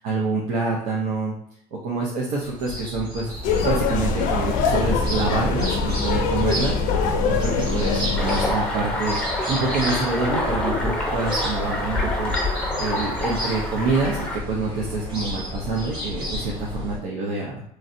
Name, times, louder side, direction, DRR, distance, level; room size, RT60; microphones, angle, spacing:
voice 1, 0.0-1.3 1.8-3.3 3.6-6.8 7.2-12.3 12.8-17.6, right 3 dB, 80° right, -4 dB, 0.7 m, -26 dB
sound 1, 2.4-17.0, left 1 dB, 35° right, 1.4 m, -31 dB
sound 2, 3.4-8.5, left 4 dB, 75° left, 0.5 m, -23 dB
sound 3, 8.2-14.4, left 1 dB, 5° left, 0.6 m, -27 dB
3.1 x 2.6 x 2.6 m, 0.71 s
cardioid pair, 130°, 14 cm